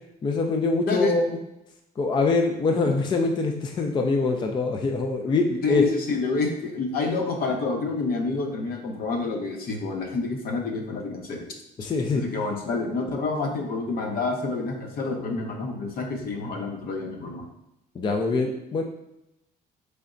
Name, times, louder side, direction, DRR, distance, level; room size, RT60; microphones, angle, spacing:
voice 1, 0.2-1.2 2.0-5.8 11.8-12.2 18.0-18.8, left 3 dB, 30° left, 3 dB, 0.4 m, -24 dB
voice 2, 5.6-11.5 12.1-17.5, left 3 dB, 60° left, 2 dB, 0.7 m, -28 dB
3.9 x 3.3 x 2.5 m, 0.87 s
cardioid pair, 110°, 17 cm